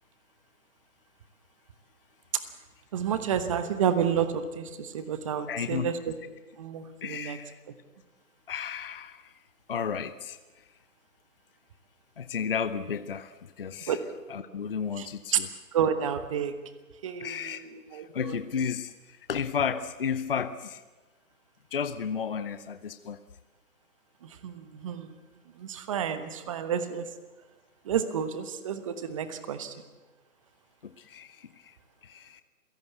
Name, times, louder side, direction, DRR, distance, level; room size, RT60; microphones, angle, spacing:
voice 1, 2.9-6.1 6.6-7.4 13.9-14.0 15.0-15.1 15.3-15.4 15.7-16.5 17.0-18.4 24.2-25.1 25.5-27.1 27.8-29.7, right 8 dB, 20° right, 11 dB, 1.2 m, -30 dB
voice 2, 5.5-5.9 7.0-7.6 8.5-9.3 9.7-10.7 12.2-14.0 14.3-15.5 17.2-20.8 21.7-23.2 30.8-31.8 32.0-32.4, left 7 dB, 35° left, 12 dB, 0.7 m, -33 dB
28.0 x 17.0 x 8.3 m, 1.3 s
figure-of-eight pair, 155°, 46 cm